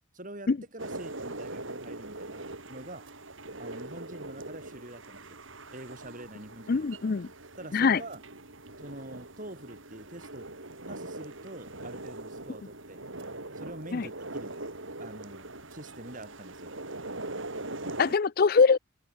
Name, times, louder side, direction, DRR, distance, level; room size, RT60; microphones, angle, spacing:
voice 1, 0.1-3.1 3.6-5.4 5.7-6.9 7.6-8.2 8.8-10.5 10.8-13.0 13.5-14.5 15.0-16.7, right 1 dB, 40° right, 6.8 m, -45 dB
sound 1, 0.8-18.1, right 2 dB, 75° right, 6.1 m, -42 dB
voice 2, 6.7-7.3 7.7-8.0 13.9-14.1 18.0-18.8, left 5 dB, 45° left, 0.5 m, -23 dB
head